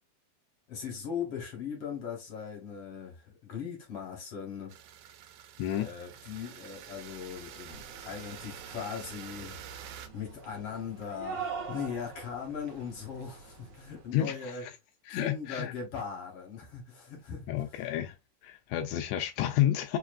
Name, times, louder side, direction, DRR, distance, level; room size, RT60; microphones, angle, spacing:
voice 1, 0.7-4.8 5.8-9.6 10.1-14.6 15.1-17.5, left 7 dB, 55° left, 2.2 m, -39 dB
sound 1, 4.7-10.1, right 9 dB, 90° right, 2.1 m, -47 dB
voice 2, 5.6-5.9 14.1-14.7 15.1-15.7 17.5-18.2 18.4-20.0, left 12 dB, 80° left, 1.6 m, -30 dB
sound 2, 7.7-14.2, right 6 dB, 60° right, 2.1 m, -44 dB
4.9 x 3.0 x 2.5 m
omnidirectional pair, 3.5 m